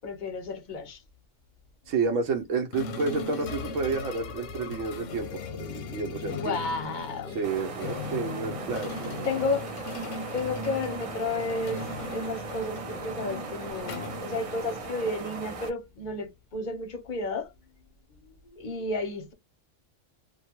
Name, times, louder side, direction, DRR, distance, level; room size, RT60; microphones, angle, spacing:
voice 1, 0.0-1.0 6.2-7.4 9.3-9.7 10.3-17.5 18.2-19.3, left 3 dB, 50° left, 0.7 m, -32 dB
voice 2, 1.9-6.6 7.3-9.3, right 4 dB, 80° right, 1.0 m, -30 dB
sound 1, 2.7-15.0, left 4 dB, 90° left, 1.0 m, -38 dB
sound 2, 3.2-8.5, right 4 dB, 30° right, 1.0 m, -50 dB
sound 3, 7.4-15.7, right 4 dB, 50° right, 0.4 m, -38 dB
2.6 x 2.2 x 2.9 m
omnidirectional pair, 1.3 m